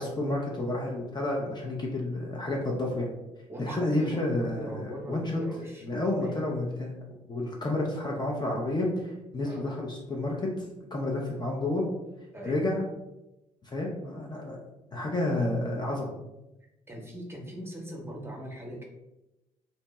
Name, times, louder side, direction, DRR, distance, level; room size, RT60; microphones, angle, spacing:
voice 1, 0.0-3.1 3.6-5.4 5.8-6.9 7.3-10.7 10.9-11.8 12.4-12.9 13.6-14.6 14.9-16.1, left 2 dB, 25° left, -1 dB, 0.6 m, -30 dB
voice 2, 3.5-5.8 6.2-6.4 9.4-9.7 12.3-12.7 16.9-18.8, equal, 15° right, -1 dB, 0.8 m, -40 dB
2.7 x 2.1 x 3.0 m, 0.95 s
hypercardioid pair, 50°, 17 cm